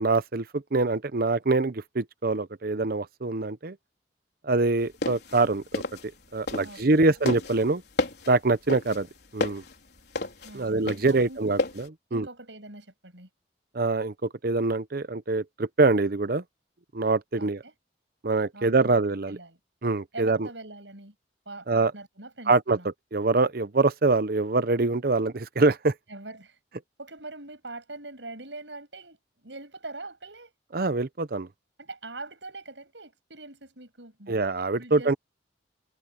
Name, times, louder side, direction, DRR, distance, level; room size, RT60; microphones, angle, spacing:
voice 1, 0.0-3.8 4.4-5.8 6.3-7.8 8.3-9.1 9.3-9.6 10.5-12.3 13.7-16.4 16.9-17.6 18.2-19.4 19.8-20.5 21.7-21.9 22.5-22.8 23.1-25.9 30.7-31.5 34.3-35.1, right 3 dB, 55° right, 0.8 m, -24 dB
sound 1, 4.8-6.9 7.3-11.9, left 2 dB, 65° left, 4.4 m, -31 dB
voice 2, 6.6-7.1 10.4-11.6 12.1-13.3 17.4-17.7 18.5-19.0 19.3-19.6 20.1-21.1 21.5-22.9 26.1-26.6 27.0-30.5 31.8-34.4 34.7-35.2, right 2 dB, 80° right, 7.4 m, -43 dB
head